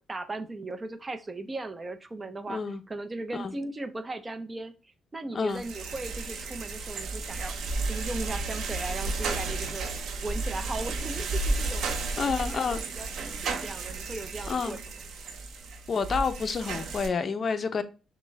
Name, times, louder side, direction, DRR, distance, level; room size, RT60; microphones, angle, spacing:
voice 1, 0.0-2.6 2.9-7.5 7.9-9.9 10.2-14.8, right 2 dB, 25° right, 0.6 m, -37 dB
voice 2, 2.5-2.8 3.3-3.5 5.3-5.6 12.2-12.8 14.5-14.8 15.9-17.8, left 5 dB, 45° left, 0.5 m, -29 dB
sound 1, 5.5-17.1, right 3 dB, 70° right, 0.7 m, -33 dB
5.9 x 2.2 x 3.2 m
cardioid pair, 90°, 0 cm